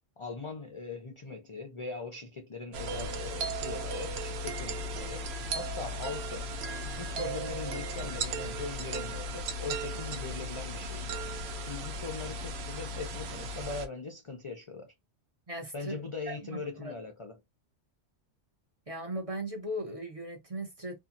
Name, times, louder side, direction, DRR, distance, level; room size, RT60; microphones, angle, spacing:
voice 1, 0.2-5.3 5.5-6.5 6.8-14.9 15.7-17.4, left 4 dB, 45° left, 0.4 m, -41 dB
sound 1, 2.7-13.9, right 1 dB, 70° right, 0.8 m, -36 dB
voice 2, 15.5-16.9 18.9-21.0, right 1 dB, 35° right, 0.6 m, -38 dB
2.7 x 2.4 x 2.4 m
omnidirectional pair, 1.2 m